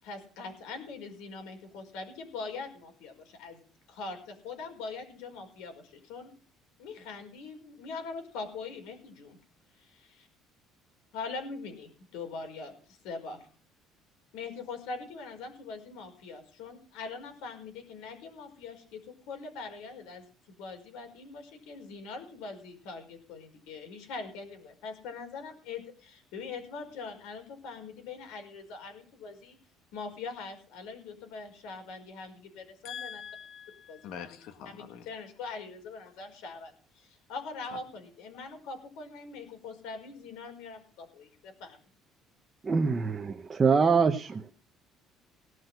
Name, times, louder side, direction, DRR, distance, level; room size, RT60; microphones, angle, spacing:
voice 1, 0.0-3.6 3.9-6.3 6.8-9.4 9.8-10.0 11.1-13.5 14.3-29.6 29.9-33.2 33.9-34.2 34.6-41.8, left 4 dB, 85° left, 5.1 m, -42 dB
voice 2, 32.8-35.1, left 8 dB, 65° left, 1.6 m, -43 dB
voice 3, 42.6-44.4, right 5 dB, 20° right, 0.8 m, -24 dB
17.5 x 6.2 x 7.9 m
cardioid pair, 175°, 0 cm